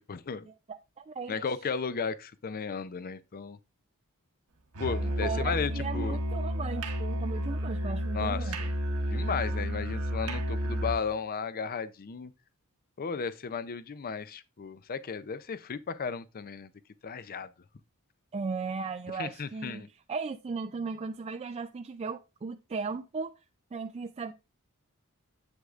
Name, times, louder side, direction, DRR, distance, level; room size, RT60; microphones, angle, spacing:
voice 1, 0.1-0.5 1.3-3.6 4.8-6.2 8.1-8.7 9.1-12.3 13.0-16.7 17.0-17.5 19.2-19.9, left 5 dB, 40° left, 0.5 m, -34 dB
voice 2, 1.0-1.4 5.2-8.6 18.3-23.4 23.7-24.3, right 4 dB, 30° right, 0.3 m, -36 dB
Musical instrument, 4.7-11.1, equal, 75° right, 1.0 m, -31 dB
8.0 x 7.7 x 2.4 m
head